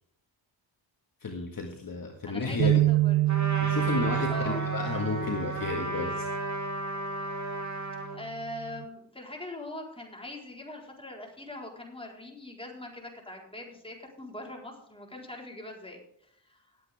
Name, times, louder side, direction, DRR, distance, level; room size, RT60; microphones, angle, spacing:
voice 1, 1.2-2.9 3.6-6.3, left 4 dB, 40° left, 2 dB, 1.9 m, -32 dB
voice 2, 2.2-3.2 4.3-4.6 8.1-16.0 16.4-16.6, left 1 dB, 10° left, -1 dB, 4.3 m, -41 dB
sound 1, 2.6-6.9 7.3-7.6 8.4-8.8, right 15 dB, 65° right, 1.1 m, -28 dB
Trumpet, 3.3-8.2, right 2 dB, 35° right, 3.5 m, -34 dB
19.0 x 8.6 x 3.6 m, 0.71 s
cardioid pair, 70°, 49 cm